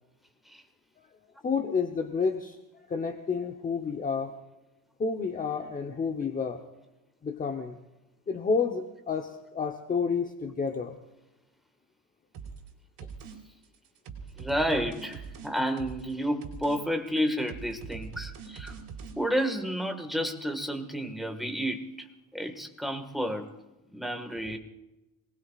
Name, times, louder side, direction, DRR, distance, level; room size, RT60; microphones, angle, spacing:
voice 1, 1.4-2.6 2.9-4.3 5.0-6.6 7.2-7.8 8.3-11.0, left 5 dB, 20° left, 4 dB, 0.9 m, -30 dB
sound 1, 12.3-12.7 13.0-13.4 13.6-16.1 16.4-16.8 17.1-19.2, right 6 dB, 70° right, 4.3 m, -42 dB
voice 2, 14.3-18.8 19.2-23.5 23.9-24.6, equal, ahead, 4 dB, 1.7 m, -31 dB
26.5 x 20.0 x 2.5 m, 1.0 s
cardioid pair, 145°, 40 cm